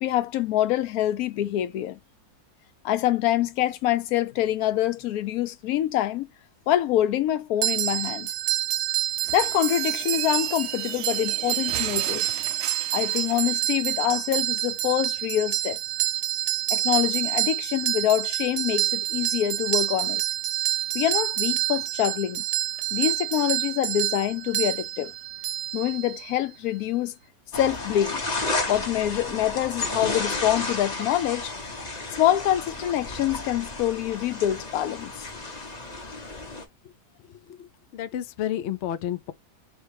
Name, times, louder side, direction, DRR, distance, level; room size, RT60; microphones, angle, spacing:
voice 1, 0.0-2.0 2.8-6.3 6.7-8.3 9.3-12.3 12.9-15.8 16.7-20.2 20.9-22.4 22.9-25.1 25.7-27.1 27.5-28.2 28.7-31.5 32.2-35.3, left 12 dB, 70° left, 1.0 m, -25 dB
sound 1, 7.6-26.4, right 15 dB, 85° right, 1.2 m, -28 dB
sound 2, 9.2-13.6, right 11 dB, 70° right, 0.8 m, -37 dB
sound 3, 27.5-36.6, left 2 dB, 30° left, 0.9 m, -32 dB
voice 2, 37.2-39.3, left 11 dB, 90° left, 0.6 m, -32 dB
3.2 x 3.1 x 4.7 m
omnidirectional pair, 1.7 m